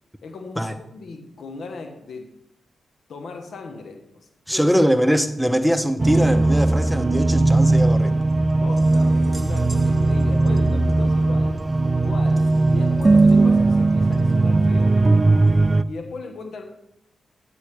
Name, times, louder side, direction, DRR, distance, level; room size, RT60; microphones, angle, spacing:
voice 1, 0.2-2.3 3.1-4.7 8.6-11.7 11.9-15.0 15.9-16.6, left 3 dB, 70° left, 5 dB, 1.2 m, -37 dB
voice 2, 4.5-8.3, equal, ahead, 9 dB, 0.8 m, -21 dB
sound 1, 6.0-15.8, right 2 dB, 30° right, 0.4 m, -18 dB
10.0 x 9.0 x 3.4 m, 0.81 s
supercardioid pair, 45°, 0 cm